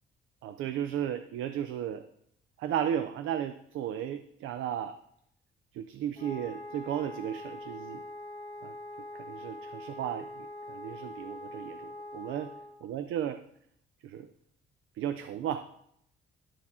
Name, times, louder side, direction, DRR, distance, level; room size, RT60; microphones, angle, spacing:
voice 1, 0.4-2.1 2.6-5.0 5.7-8.0 8.6-8.8 9.1-12.5 12.8-13.4 14.0-14.3 15.0-15.7, right 10 dB, 75° right, 10 dB, 0.4 m, -34 dB
Wind instrument woodwind instrument, 6.2-12.8, left 1 dB, 30° left, 1.2 m, -43 dB
11.0 x 4.7 x 3.5 m, 0.73 s
cardioid pair, 145°, 21 cm